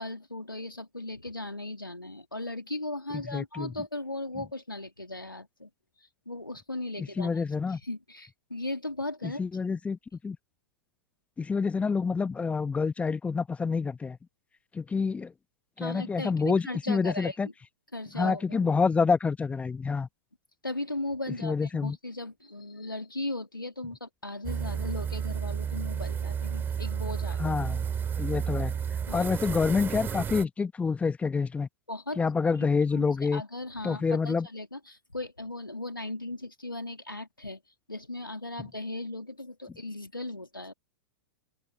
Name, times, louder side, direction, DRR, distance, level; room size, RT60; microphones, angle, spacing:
voice 1, 0.0-5.7 6.3-7.4 7.7-9.4 15.8-17.4 17.9-18.8 20.6-27.6 29.0-29.3 31.9-32.2 32.6-32.7 32.9-37.6 37.9-40.7, left 2 dB, 90° left, 2.5 m, -37 dB
voice 2, 3.3-3.7 7.0-7.8 9.2-10.0 10.2-10.4 11.4-14.2 14.7-15.3 15.8-17.5 18.2-20.1 21.4-22.0 27.4-27.9 28.2-28.7 29.1-31.7 32.2-33.4 33.8-34.5, left 5 dB, 10° left, 1.3 m, -27 dB
sound 1, 24.4-30.4, right 7 dB, 20° right, 3.0 m, -32 dB
figure-of-eight pair, 100°, 11 cm